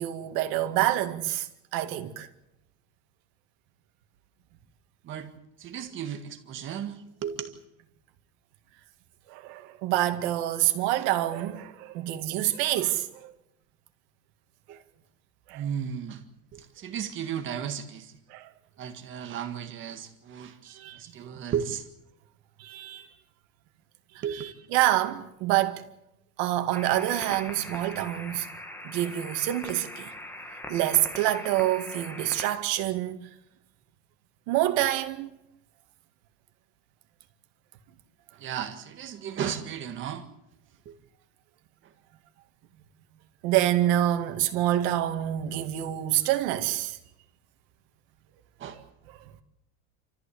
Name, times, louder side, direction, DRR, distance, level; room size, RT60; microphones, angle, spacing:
voice 1, 0.0-1.5 1.7-2.3 9.3-13.3 15.5-15.6 18.3-18.5 20.8-21.0 22.6-23.1 24.3-25.8 26.4-28.5 28.8-30.1 30.7-33.3 34.5-35.3 43.4-47.0, right 13 dB, 70° right, 2.2 m, -27 dB
voice 2, 5.6-7.6 14.7-14.8 15.5-16.2 16.5-18.1 18.8-21.8 24.2-24.5 38.4-40.2 40.9-41.0 48.6-48.8, right 8 dB, 35° right, 1.8 m, -35 dB
sound 1, 26.7-32.5, left 1 dB, 5° left, 1.5 m, -41 dB
28.0 x 14.5 x 8.6 m
cardioid pair, 170°, 34 cm